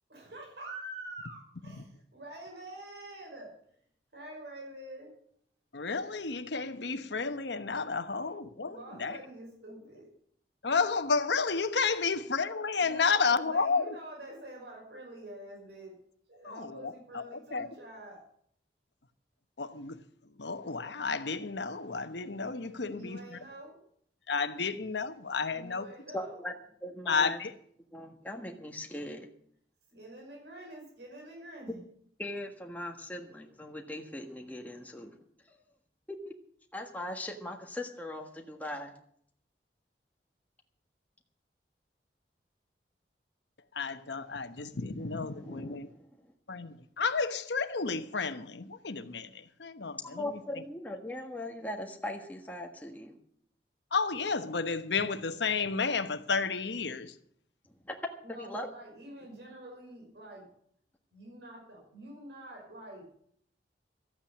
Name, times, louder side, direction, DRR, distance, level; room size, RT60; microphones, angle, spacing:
voice 1, 0.1-1.9 2.1-3.5 4.1-5.1 8.6-10.1 12.8-15.9 16.3-18.3 22.8-23.8 25.5-26.4 29.9-31.8 58.2-60.5 61.1-63.0, right 1 dB, 75° right, 5.4 m, -46 dB
voice 2, 5.7-9.2 10.6-13.9 16.4-17.2 17.5-17.7 19.6-20.0 20.4-23.4 24.3-25.9 27.1-27.5 43.7-45.9 46.5-50.3 53.9-57.1, left 4 dB, 80° left, 1.0 m, -31 dB
voice 3, 26.1-26.5 26.8-27.4 27.9-29.3 32.2-35.2 36.1-36.3 36.7-38.9 45.2-46.0 50.0-53.2 57.8-58.7, left 1 dB, 10° left, 1.5 m, -40 dB
13.5 x 8.9 x 8.5 m
head